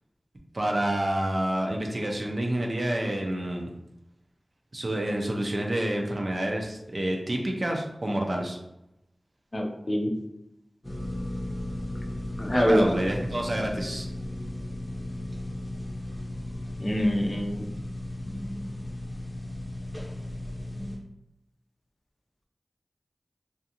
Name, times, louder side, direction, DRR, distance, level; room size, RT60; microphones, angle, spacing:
voice 1, 0.5-3.7 4.7-8.6 12.5-14.0, right 1 dB, 55° right, 1 dB, 0.5 m, -28 dB
voice 2, 9.5-10.1 12.4-12.9 16.8-17.6, equal, 45° left, 1 dB, 0.4 m, -25 dB
sound 1, 10.8-21.0, left 1 dB, 10° left, 0.8 m, -35 dB
2.5 x 2.4 x 2.8 m, 0.88 s
wide cardioid pair, 45°, 0 cm